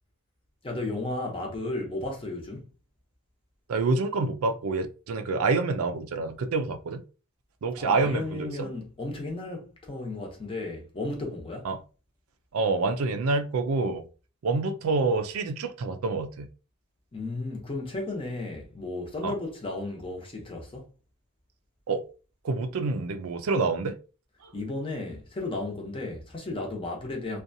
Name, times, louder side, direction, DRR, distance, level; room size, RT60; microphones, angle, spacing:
voice 1, 0.6-2.6 7.8-11.7 17.1-20.9 24.5-27.4, left 2 dB, 25° left, 0.7 m, -34 dB
voice 2, 3.7-7.0 7.6-8.7 11.6-11.8 12.5-14.0 14.4-16.5 19.2-19.3 21.9-22.0 22.4-24.0 24.4-24.5, right 3 dB, 75° right, 0.4 m, -27 dB
2.6 x 2.2 x 2.6 m
head